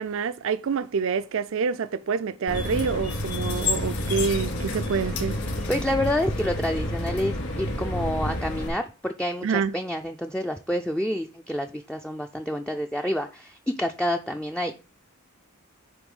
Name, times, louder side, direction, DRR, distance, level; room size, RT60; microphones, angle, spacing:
voice 1, 0.0-5.4 9.4-9.7, right 5 dB, 60° right, 0.4 m, -27 dB
sound 1, 2.5-8.7, left 1 dB, 65° left, 3.0 m, -29 dB
voice 2, 5.7-14.7, left 1 dB, 5° left, 0.4 m, -28 dB
9.6 x 3.5 x 5.4 m
head